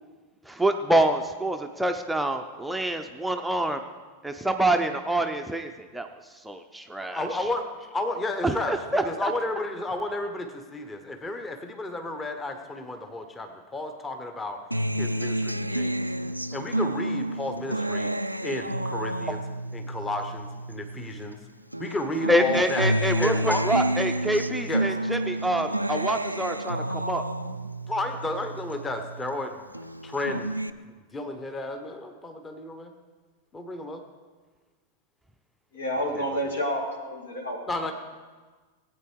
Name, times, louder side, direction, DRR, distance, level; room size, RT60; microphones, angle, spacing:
voice 1, 0.5-3.8 4.2-6.1 6.4-7.4 8.4-9.3 22.3-27.2 36.1-36.2, right 1 dB, 5° right, 5 dB, 0.7 m, -26 dB
voice 2, 7.1-14.6 15.0-16.0 16.5-18.1 18.4-19.4 19.7-21.4 21.8-22.9 23.2-23.7 24.7-24.9 27.9-29.7 30.0-30.6 31.1-32.9 33.5-34.0 36.3-36.4 37.7-37.9, left 2 dB, 15° left, 6 dB, 1.2 m, -32 dB
Acoustic guitar, 14.7-21.4 21.7-29.3 29.7-30.7, right 1 dB, 85° right, 0.4 m, -30 dB
voice 3, 35.7-37.6, equal, 70° left, 2 dB, 2.3 m, -29 dB
17.0 x 8.8 x 4.7 m, 1.4 s
figure-of-eight pair, 90°, 0 cm